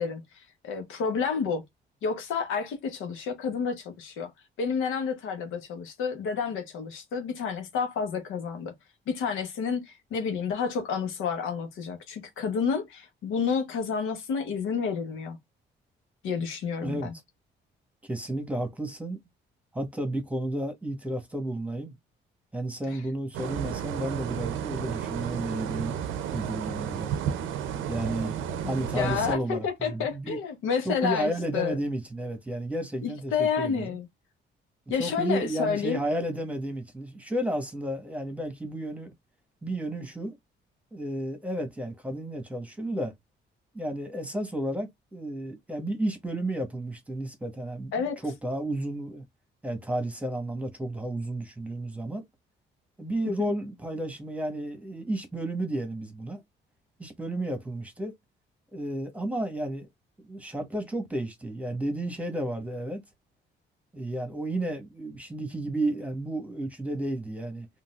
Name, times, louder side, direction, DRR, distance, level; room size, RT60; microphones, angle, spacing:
voice 1, 0.0-1.6 2.0-4.3 4.6-8.7 9.1-15.4 16.2-17.1 22.9-23.0 28.6-31.8 33.0-34.1 34.9-36.0 47.9-48.2 53.4-53.5, left 6 dB, 90° left, 1.0 m, -30 dB
voice 2, 18.0-19.2 19.7-21.9 22.5-26.0 26.3-27.1 27.9-28.4 28.7-30.4 30.8-34.0 34.9-39.1 39.6-40.4 40.9-43.1 43.7-47.9 48.2-49.2 49.6-52.2 53.0-56.4 57.0-58.1 58.7-59.9 60.2-63.0 63.9-67.7, right 1 dB, 5° right, 1.2 m, -32 dB
sound 1, 23.3-29.4, right 9 dB, 90° right, 0.6 m, -32 dB
3.8 x 2.5 x 2.4 m
cardioid pair, 90°, 20 cm